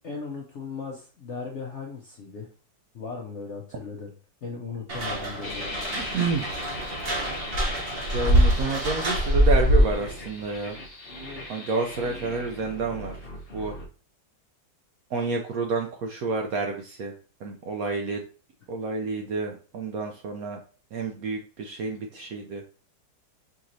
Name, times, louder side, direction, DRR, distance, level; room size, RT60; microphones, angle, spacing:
voice 1, 0.0-2.5 2.9-4.1 4.4-5.6, left 5 dB, 65° left, -1 dB, 0.7 m, -37 dB
sound 1, 4.9-10.1, right 1 dB, 45° right, 0.8 m, -24 dB
sound 2, 5.4-13.8, left 2 dB, 40° left, 1.0 m, -39 dB
voice 2, 6.0-6.5 8.1-10.8 11.5-13.2 13.5-13.8 15.1-17.1 17.4-18.2 18.7-20.6 20.9-22.6, right 3 dB, 70° right, 3 dB, 0.8 m, -29 dB
5.0 x 3.0 x 2.6 m, 0.39 s
omnidirectional pair, 2.0 m